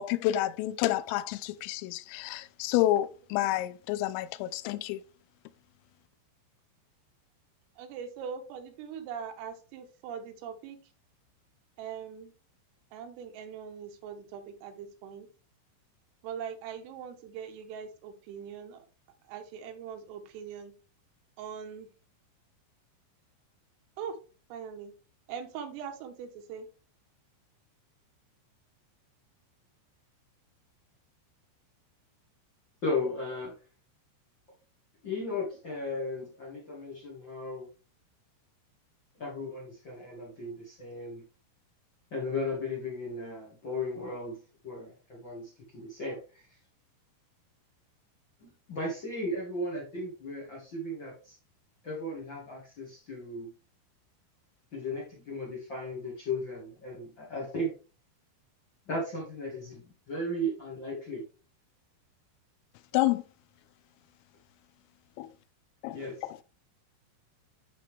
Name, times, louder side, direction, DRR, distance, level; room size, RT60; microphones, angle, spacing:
voice 1, 0.0-5.0 62.9-63.2 65.2-65.3 65.8-66.0 66.2-66.4, left 14 dB, 85° left, 3.2 m, -29 dB
voice 2, 7.8-10.8 11.8-12.3 12.9-15.3 16.2-18.9 19.3-20.7 21.4-21.9 24.0-24.2 24.5-24.9 25.3-26.7, right 7 dB, 85° right, 3.8 m, -41 dB
voice 3, 32.8-33.5 35.0-37.7 39.1-41.2 42.1-46.4 48.7-51.3 51.8-53.5 54.7-57.7 58.8-61.2 65.9-66.1, left 1 dB, 45° left, 1.5 m, -36 dB
12.0 x 4.3 x 3.5 m
omnidirectional pair, 5.8 m